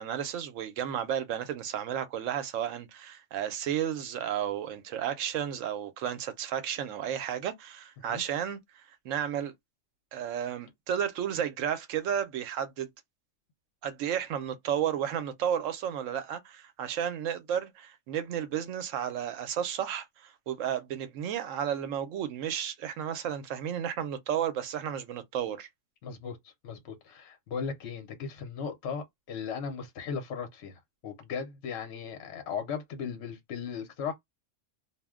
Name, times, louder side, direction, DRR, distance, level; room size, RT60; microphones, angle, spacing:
voice 1, 0.0-9.5 10.1-12.9 13.8-25.7, right 9 dB, 90° right, 1.0 m, -33 dB
voice 2, 26.0-26.4 26.6-34.1, left 6 dB, 65° left, 1.0 m, -37 dB
2.4 x 2.1 x 3.5 m
omnidirectional pair, 1.3 m